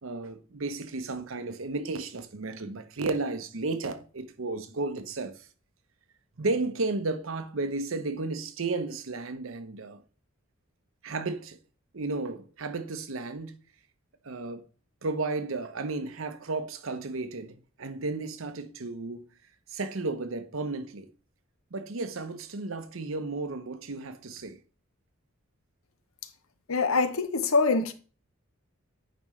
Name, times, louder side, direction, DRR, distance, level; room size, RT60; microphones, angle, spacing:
voice 1, 0.0-5.5 6.4-10.0 11.0-11.6 11.9-13.6 14.2-14.6 15.0-19.2 19.7-21.1 21.7-24.6, right 3 dB, 75° right, 0.8 m, -33 dB
voice 2, 26.7-27.9, left 4 dB, 85° left, 0.8 m, -24 dB
9.3 x 5.1 x 3.2 m
head